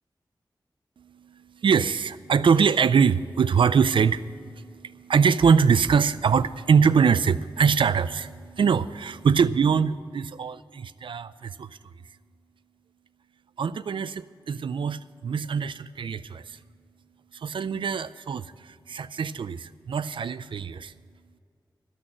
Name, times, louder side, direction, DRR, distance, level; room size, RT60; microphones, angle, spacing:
voice 1, 1.0-11.7 13.6-16.6 17.3-20.9, right 6 dB, 80° right, 15 dB, 0.4 m, -23 dB
14.0 x 6.4 x 8.7 m, 2.1 s
wide cardioid pair, 70°, 8 cm